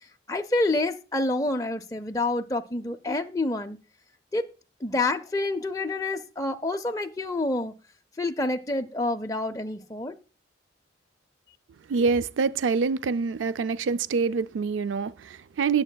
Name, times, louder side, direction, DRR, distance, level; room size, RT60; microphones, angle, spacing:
voice 1, 0.3-3.8 4.3-4.4 4.8-7.7 8.2-10.1, left 2 dB, 20° left, 0.5 m, -28 dB
voice 2, 11.9-15.8, right 5 dB, 85° right, 0.4 m, -26 dB
19.0 x 7.3 x 2.3 m
head